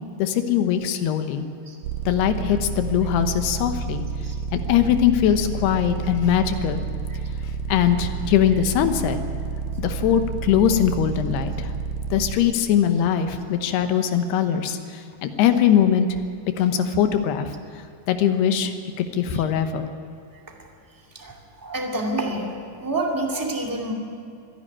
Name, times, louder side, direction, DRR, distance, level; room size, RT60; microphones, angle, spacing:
voice 1, 0.2-1.5 2.1-4.0 4.5-6.8 7.7-9.2 9.8-11.7 12.1-16.2 16.6-17.5 18.1-18.7 19.1-19.9, left 9 dB, 85° left, 8 dB, 3.2 m, -21 dB
sound 1, 1.8-12.3, right 5 dB, 70° right, 2.4 m, -30 dB
voice 2, 21.1-22.5 22.8-23.9, right 2 dB, 10° right, 0 dB, 1.2 m, -28 dB
25.0 x 11.0 x 9.9 m, 2.4 s
omnidirectional pair, 4.5 m